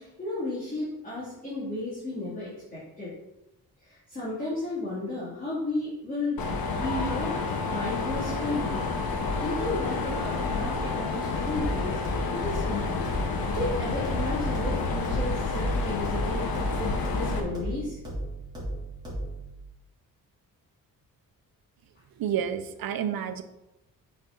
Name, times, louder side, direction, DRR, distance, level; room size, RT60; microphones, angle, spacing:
voice 1, 0.0-3.1 3.8-6.4 6.8-8.9 9.4-12.0 12.3-13.0 13.5-18.0, left 2 dB, 25° left, -10 dB, 2.4 m, -33 dB
Mechanisms, 6.4-17.4, left 3 dB, 80° left, 1.2 m, -29 dB
sound 1, 11.6-19.6, right 1 dB, 10° right, 2.9 m, -36 dB
voice 2, 22.2-23.4, right 9 dB, 80° right, 10 dB, 0.8 m, -29 dB
8.6 x 5.2 x 3.9 m, 0.91 s
wide cardioid pair, 155°, 35 cm